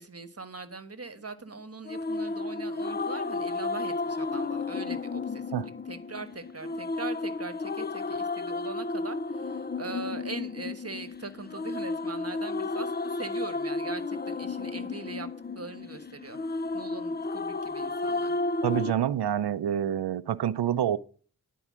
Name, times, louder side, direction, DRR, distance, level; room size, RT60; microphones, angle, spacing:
voice 1, 0.0-15.3 15.5-18.3, right 3 dB, 40° right, 1.3 m, -41 dB
sound 1, 1.9-18.9, left 3 dB, 25° left, 0.4 m, -33 dB
voice 2, 18.6-21.0, right 10 dB, 85° right, 0.5 m, -27 dB
11.0 x 4.6 x 7.4 m
cardioid pair, 50°, 39 cm